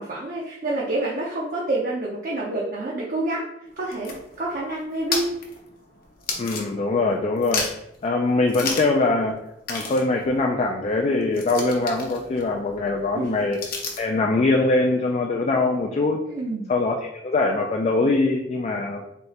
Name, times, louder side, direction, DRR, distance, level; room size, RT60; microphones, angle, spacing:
voice 1, 0.0-3.5 3.8-5.3 13.1-13.4 16.3-16.7, right 2 dB, 45° right, -4 dB, 0.6 m, -28 dB
sound 1, 3.7-7.1 7.4-8.0 8.5-9.0 9.3-9.4 9.6-14.2, left 4 dB, 55° left, 0.7 m, -33 dB
voice 2, 6.4-7.7 8.0-9.4 9.7-13.6 14.0-16.2 16.7-17.0 17.2-19.0, left 3 dB, 35° left, 1 dB, 0.3 m, -22 dB
3.3 x 2.8 x 4.1 m, 0.82 s
head